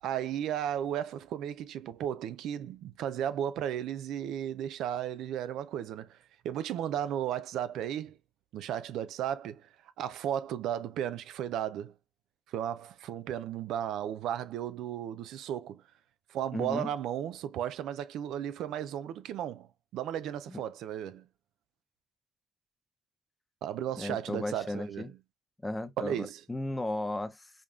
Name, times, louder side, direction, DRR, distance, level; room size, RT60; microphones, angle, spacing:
voice 1, 0.0-6.2 6.4-8.2 8.5-9.7 10.0-11.9 12.5-15.8 16.3-21.3 23.6-25.2 26.0-26.4, right 10 dB, 85° right, 0.4 m, -34 dB
voice 2, 16.5-16.9 20.5-20.6 24.0-25.1 25.6-27.5, left 1 dB, 15° left, 0.7 m, -35 dB
5.1 x 2.4 x 2.4 m
cardioid pair, 90°, 0 cm